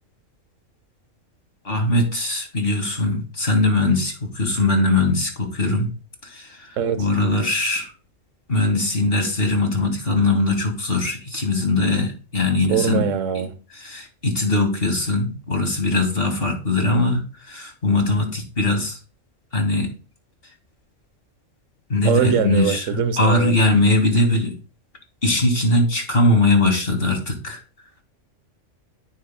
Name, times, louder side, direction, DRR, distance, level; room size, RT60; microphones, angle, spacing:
voice 1, 1.6-5.9 6.2-7.9 8.5-13.0 13.8-19.0 19.5-19.9 21.9-22.8 23.2-24.5 25.2-27.6, left 2 dB, 45° left, 2.4 m, -21 dB
voice 2, 6.8-7.1 12.7-13.6 22.0-23.5, right 7 dB, 75° right, 1.3 m, -22 dB
14.0 x 6.7 x 2.2 m
omnidirectional pair, 1.3 m